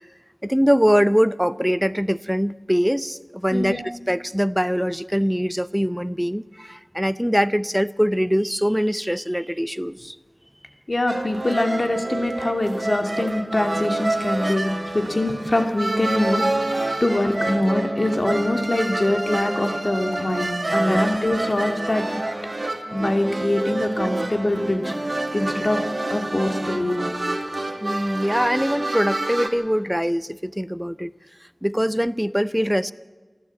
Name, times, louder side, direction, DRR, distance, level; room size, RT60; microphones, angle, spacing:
voice 1, 0.4-10.2 20.8-21.0 27.8-31.1 31.6-32.9, equal, 5° right, 16 dB, 0.7 m, -22 dB
voice 2, 10.9-16.4 17.0-22.1 22.9-25.0 25.3-25.8 26.1-26.9, left 1 dB, 60° left, 5 dB, 2.5 m, -23 dB
sound 1, 11.1-29.5, right 2 dB, 55° right, 2.4 m, -28 dB
28.0 x 12.0 x 8.5 m, 1.4 s
wide cardioid pair, 45°, 0 cm